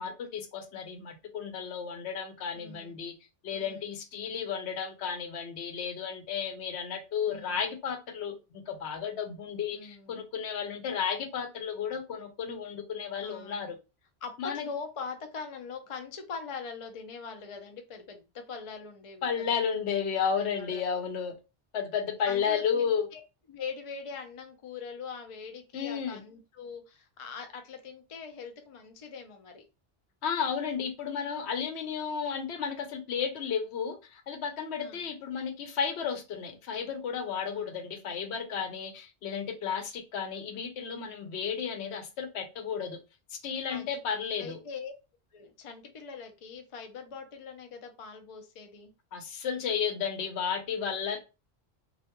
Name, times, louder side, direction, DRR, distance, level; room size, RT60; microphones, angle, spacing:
voice 1, 0.0-3.1 3.4-13.8 14.4-14.7 19.2-21.3 21.7-23.1 25.7-26.2 30.2-43.0 43.3-44.6 49.1-51.2, left 7 dB, 75° left, 0.9 m, -33 dB
voice 2, 2.5-3.0 3.5-3.9 7.3-7.6 9.7-10.2 13.2-13.7 14.2-19.5 20.4-20.8 22.3-23.2 23.5-29.7 34.8-35.0 37.5-37.7 43.7-43.9 44.4-44.9 45.3-48.9, left 5 dB, 50° left, 0.4 m, -42 dB
2.4 x 2.2 x 2.8 m
omnidirectional pair, 1.1 m